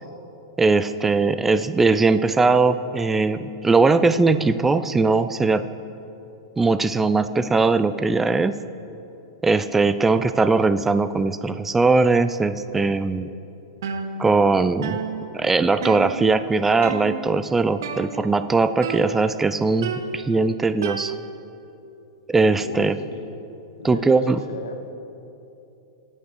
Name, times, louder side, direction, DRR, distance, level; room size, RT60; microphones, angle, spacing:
voice 1, 0.6-5.6 6.6-8.5 9.4-13.3 14.2-15.0 15.3-21.1 22.3-23.0 23.8-24.4, right 3 dB, 10° right, 12 dB, 0.3 m, -20 dB
sound 1, 13.8-14.5 14.8-16.5 16.8-17.4 17.8-18.5 18.8-19.4 19.8-21.5, right 6 dB, 60° right, 0.6 m, -32 dB
voice 2, 22.6-23.4 23.8-24.8, left 4 dB, 65° left, 6 dB, 0.9 m, -35 dB
17.0 x 9.4 x 3.3 m, 2.9 s
figure-of-eight pair, 95°, 2 cm